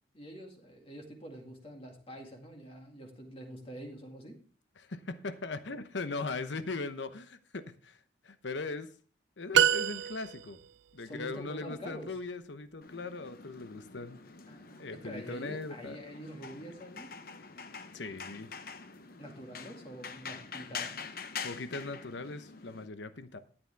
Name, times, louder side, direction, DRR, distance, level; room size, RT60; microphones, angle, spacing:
voice 1, 0.1-4.4 11.0-12.2 14.5-17.1 19.2-21.1, equal, 30° left, 2.1 m, -46 dB
voice 2, 4.8-8.9 9.4-10.6 10.9-14.2 14.8-16.0 16.6-16.7 17.9-18.5 21.4-23.4, left 3 dB, 85° left, 0.9 m, -39 dB
sound 1, 9.5-10.7, right 9 dB, 90° right, 0.4 m, -26 dB
sound 2, 12.8-22.9, left 6 dB, 55° left, 0.9 m, -45 dB
13.5 x 9.1 x 3.5 m
head